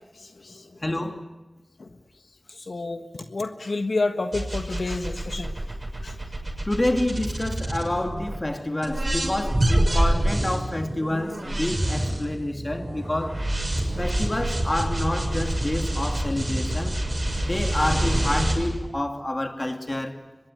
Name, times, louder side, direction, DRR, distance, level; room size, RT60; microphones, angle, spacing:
voice 1, 0.8-1.2 6.7-13.4 14.0-17.0 17.4-20.2, left 1 dB, 30° left, 5 dB, 2.6 m, -28 dB
voice 2, 2.7-3.0 3.3-5.5 6.0-6.1, left 3 dB, 85° left, 7 dB, 1.4 m, -28 dB
sound 1, 4.3-8.4 8.8-18.5, right 1 dB, 45° right, 6.9 m, -26 dB
24.0 x 22.0 x 9.7 m, 1.0 s
wide cardioid pair, 65°, 0 cm